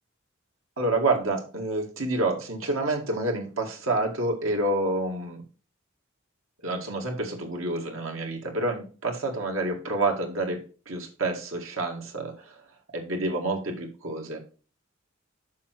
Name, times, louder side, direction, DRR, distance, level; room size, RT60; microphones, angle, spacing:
voice 1, 0.8-5.4 6.6-12.6 12.9-14.4, right 2 dB, 90° right, 2 dB, 2.2 m, -28 dB
7.2 x 5.5 x 4.6 m, 0.37 s
head